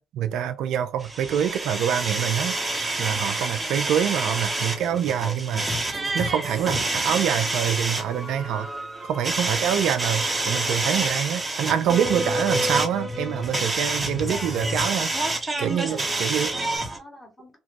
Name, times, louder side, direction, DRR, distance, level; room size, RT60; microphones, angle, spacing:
voice 1, 0.0-2.6 3.0-5.7 6.1-8.7 9.0-16.5, right 9 dB, 80° right, 0.3 m, -26 dB
sound 1, 1.0-17.0, right 2 dB, 30° right, 0.9 m, -28 dB
Alarm, 1.9-2.8 3.9-4.8 5.9-6.8 7.9-8.8 9.9-10.8 11.9-12.8 13.9-14.8 15.9-16.8, left 3 dB, 50° left, 0.5 m, -43 dB
voice 2, 15.6-17.6, equal, 20° left, 1.8 m, -45 dB
2.9 x 2.2 x 2.8 m
supercardioid pair, 55°, 0 cm